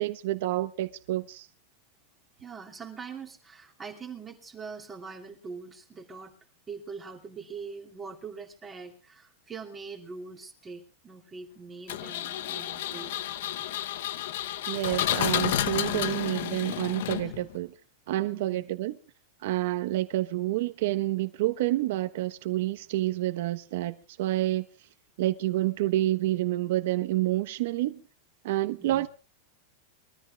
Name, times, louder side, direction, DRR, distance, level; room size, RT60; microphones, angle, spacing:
voice 1, 0.0-1.5 14.7-17.7 18.1-18.9 19.4-24.7 25.2-28.0 28.4-29.1, right 15 dB, 55° right, 1.2 m, -28 dB
voice 2, 2.4-6.3 6.7-13.1 17.2-17.3 18.2-18.6 28.8-29.1, right 5 dB, 15° right, 2.8 m, -43 dB
Engine, 11.9-17.6, left 12 dB, 65° left, 1.0 m, -31 dB
23.0 x 14.0 x 3.5 m
supercardioid pair, 165°, 0 cm